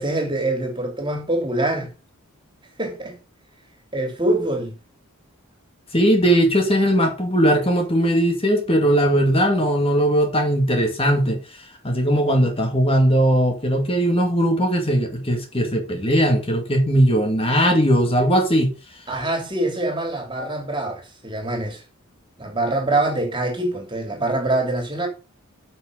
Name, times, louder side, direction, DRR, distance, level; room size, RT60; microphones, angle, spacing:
voice 1, 0.0-1.9 2.8-3.2 3.9-4.8 19.1-21.8 22.4-25.1, right 2 dB, 20° right, 3.0 m, -24 dB
voice 2, 5.9-18.7, equal, 25° left, 2.2 m, -19 dB
8.9 x 6.4 x 6.8 m
head